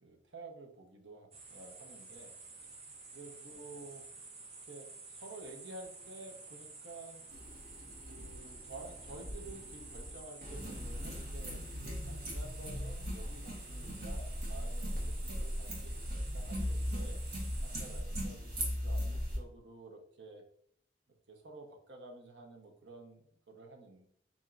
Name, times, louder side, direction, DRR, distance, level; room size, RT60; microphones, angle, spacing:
voice 1, 0.0-2.8 3.1-4.1 4.6-7.3 8.1-11.6 12.1-17.2 17.6-20.5 21.3-24.1, right 2 dB, 90° right, 1 dB, 1.0 m, -51 dB
sound 1, 1.3-18.0, right 3 dB, 35° right, 0.9 m, -52 dB
sound 2, 7.3-19.4, equal, 60° right, 1.4 m, -39 dB
7.1 x 2.9 x 2.5 m, 0.66 s
head